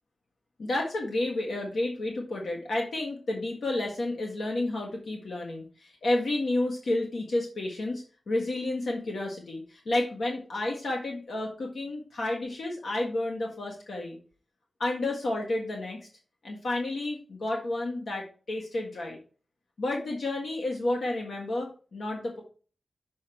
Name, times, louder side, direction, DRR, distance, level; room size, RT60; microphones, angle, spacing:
voice 1, 0.6-14.2 14.8-16.0 16.4-19.2 19.8-22.4, left 2 dB, 70° left, -1 dB, 1.6 m, -31 dB
6.4 x 5.8 x 4.5 m, 0.38 s
wide cardioid pair, 160°, 0 cm